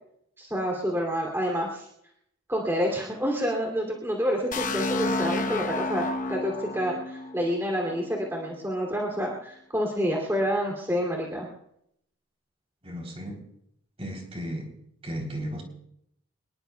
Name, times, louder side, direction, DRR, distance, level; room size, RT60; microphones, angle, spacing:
voice 1, 0.4-1.9 2.5-11.5, equal, 10° right, 2.8 m, -28 dB
sound 1, 4.5-8.3, left 2 dB, 40° left, 1.0 m, -31 dB
voice 2, 12.8-13.4 14.0-14.7 15.0-15.6, equal, 30° right, 3.5 m, -34 dB
25.5 x 20.5 x 2.3 m
head